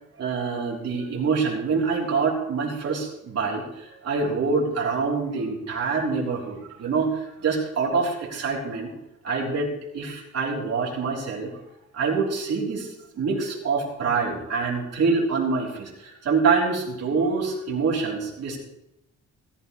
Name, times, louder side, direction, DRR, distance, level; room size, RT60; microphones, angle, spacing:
voice 1, 0.2-8.9 9.2-11.5 11.9-18.6, right 4 dB, 55° right, -3 dB, 3.7 m, -26 dB
18.5 x 14.0 x 3.3 m, 0.86 s
wide cardioid pair, 175°, 31 cm